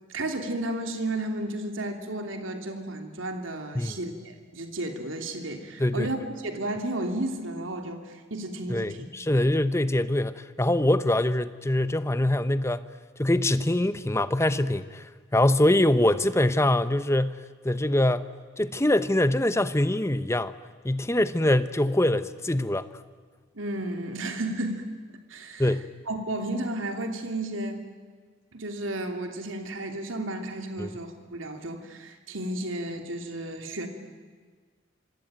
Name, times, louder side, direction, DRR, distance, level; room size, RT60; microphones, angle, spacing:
voice 1, 0.1-9.0 23.5-24.9 25.3-25.8 26.1-27.8 28.5-33.9, right 1 dB, 80° right, 5 dB, 2.9 m, -33 dB
voice 2, 8.7-12.9 13.2-15.0 15.3-17.4 17.6-18.3 18.6-20.5 20.8-22.9 25.6-25.8 30.8-30.9, left 1 dB, 15° left, 13 dB, 0.9 m, -24 dB
26.5 x 23.5 x 9.0 m, 1.5 s
head